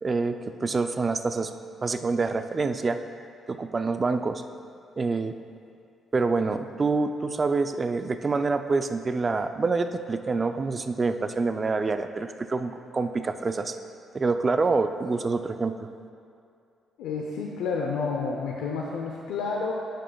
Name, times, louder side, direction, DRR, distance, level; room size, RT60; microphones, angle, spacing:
voice 1, 0.0-1.5 1.8-3.0 3.5-4.4 5.0-5.3 6.1-13.7 14.1-15.9, right 4 dB, 30° right, 8 dB, 0.4 m, -26 dB
voice 2, 17.0-19.7, left 4 dB, 90° left, -1 dB, 0.7 m, -30 dB
11.0 x 9.0 x 2.3 m, 2.5 s
cardioid pair, 90°, 0 cm